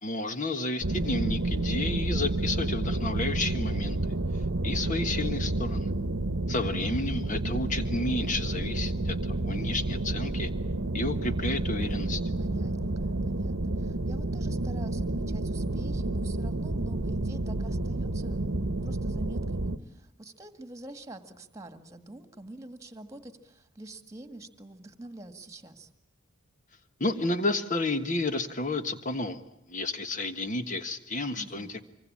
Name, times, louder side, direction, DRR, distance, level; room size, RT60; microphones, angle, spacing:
voice 1, 0.0-4.0 4.6-5.9 6.5-10.5 10.9-12.2 27.0-29.4 29.7-31.8, left 2 dB, 35° left, 9 dB, 1.6 m, -31 dB
sound 1, 0.8-19.8, right 2 dB, 65° right, 1.1 m, -30 dB
voice 2, 8.7-9.2 12.4-18.5 18.8-25.9 31.4-31.7, right 1 dB, 15° right, 9 dB, 1.9 m, -46 dB
25.5 x 24.0 x 8.7 m, 0.76 s
head